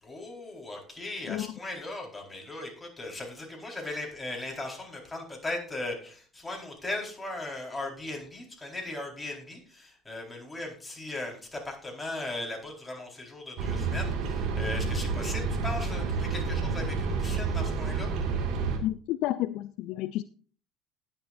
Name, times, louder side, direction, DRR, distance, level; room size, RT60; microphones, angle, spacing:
voice 1, 0.0-18.1, left 2 dB, 15° left, 0 dB, 4.4 m, -38 dB
sound 1, 13.6-18.8, right 4 dB, 55° right, 2.0 m, -29 dB
voice 2, 18.8-20.2, left 15 dB, 60° left, 15 dB, 0.4 m, -30 dB
19.0 x 7.0 x 2.6 m, 0.42 s
hypercardioid pair, 65°, 0 cm